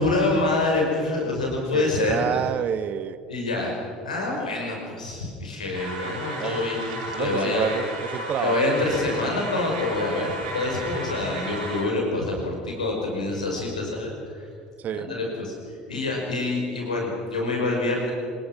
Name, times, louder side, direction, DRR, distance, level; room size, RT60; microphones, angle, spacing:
voice 1, 0.0-2.4 3.3-3.8 4.0-7.7 8.4-14.5 15.0-18.1, left 2 dB, 80° left, 0 dB, 5.5 m, -26 dB
voice 2, 1.7-3.2 6.4-6.7 7.1-8.6 14.8-15.1, right 9 dB, 40° right, 14 dB, 1.2 m, -29 dB
sound 1, 5.7-11.8, right 1 dB, 70° right, 6.0 m, -34 dB
26.5 x 20.5 x 6.0 m, 2.2 s
figure-of-eight pair, 65°, 4 cm